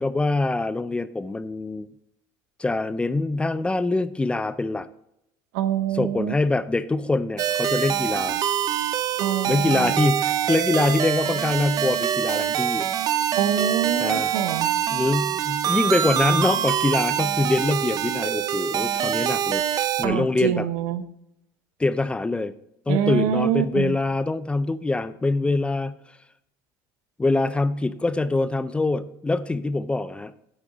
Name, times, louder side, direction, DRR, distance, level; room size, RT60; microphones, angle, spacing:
voice 1, 0.0-1.9 2.6-4.9 5.9-8.4 9.5-12.9 14.0-14.3 14.9-20.7 21.8-22.5 22.9-25.9 27.2-30.3, left 2 dB, 10° left, 15 dB, 0.4 m, -24 dB
voice 2, 5.5-6.3 9.2-9.9 13.4-14.7 20.0-21.0 22.9-23.9, right 9 dB, 80° right, 13 dB, 0.7 m, -25 dB
sound 1, 7.4-20.1, right 10 dB, 45° right, 0.5 m, -25 dB
8.8 x 8.3 x 4.0 m, 0.80 s
supercardioid pair, 105°, 9 cm